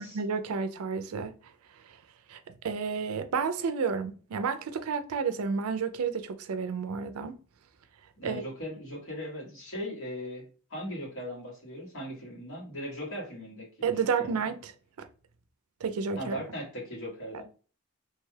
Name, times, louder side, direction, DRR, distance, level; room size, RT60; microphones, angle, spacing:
voice 1, 0.0-1.4 2.3-7.4 8.2-8.4 13.8-14.7 15.0-15.1 15.8-16.3, right 5 dB, 85° right, 0.4 m, -31 dB
voice 2, 8.2-10.4 10.7-13.7 14.2-14.3 16.2-17.4, equal, 70° left, 1.6 m, -38 dB
2.9 x 2.2 x 3.2 m
head